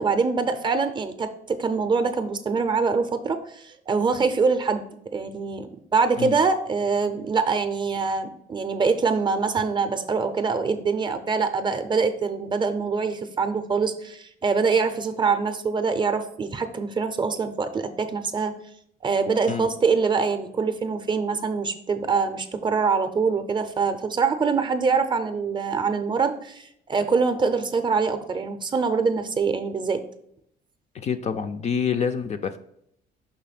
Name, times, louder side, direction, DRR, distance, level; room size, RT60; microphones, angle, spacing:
voice 1, 0.0-4.8 5.1-18.6 19.0-30.0, right 5 dB, 25° right, 9 dB, 0.5 m, -24 dB
voice 2, 30.9-32.6, left 6 dB, 40° left, 9 dB, 0.4 m, -27 dB
5.6 x 3.4 x 5.8 m, 0.72 s
cardioid pair, 125°, 18 cm